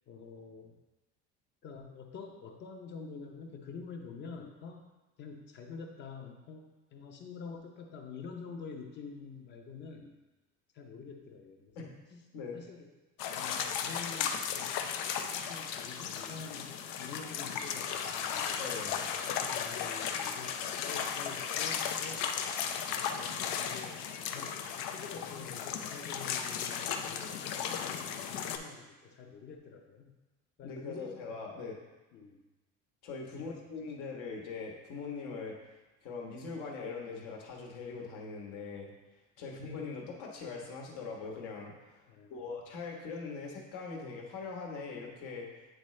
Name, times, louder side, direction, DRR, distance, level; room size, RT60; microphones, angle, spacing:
voice 1, 0.1-0.8 1.6-4.8 5.2-10.1 10.7-11.9 12.5-12.9 13.3-18.6 19.1-22.3 22.8-24.0 24.3-30.2 30.6-31.3 32.1-32.4 33.3-33.7 39.4-39.6 42.1-42.4, left 5 dB, 35° left, 3 dB, 0.7 m, -47 dB
voice 2, 11.7-12.6 18.6-19.1 30.6-31.8 33.0-35.6 36.0-38.9 39.4-45.7, left 4 dB, 70° left, -1 dB, 1.3 m, -42 dB
sound 1, 13.2-28.6, left 7 dB, 85° left, 0.6 m, -35 dB
9.0 x 3.8 x 3.2 m, 1.1 s
cardioid pair, 175°, 31 cm